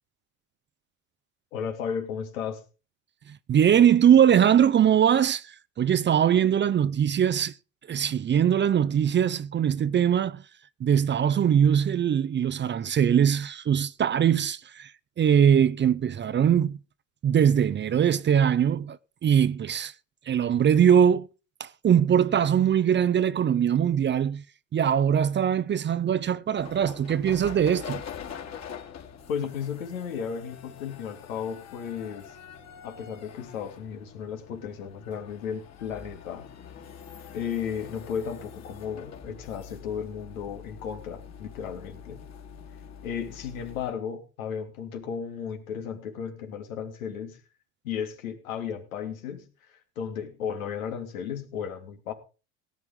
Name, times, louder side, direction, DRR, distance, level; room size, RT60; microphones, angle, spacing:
voice 1, 1.5-2.6 29.3-32.3 32.8-36.5 37.3-42.2 43.0-47.4 47.8-52.1, left 7 dB, 90° left, 3.0 m, -34 dB
voice 2, 3.3-7.5 7.9-10.4 10.8-14.9 15.2-16.8 17.2-19.0 19.2-19.9 20.3-21.3 21.6-24.4 24.7-28.0, right 9 dB, 30° right, 0.7 m, -22 dB
sound 1, 26.6-43.9, left 7 dB, 40° left, 2.9 m, -44 dB
18.0 x 9.5 x 3.8 m
hypercardioid pair, 85°, 40 cm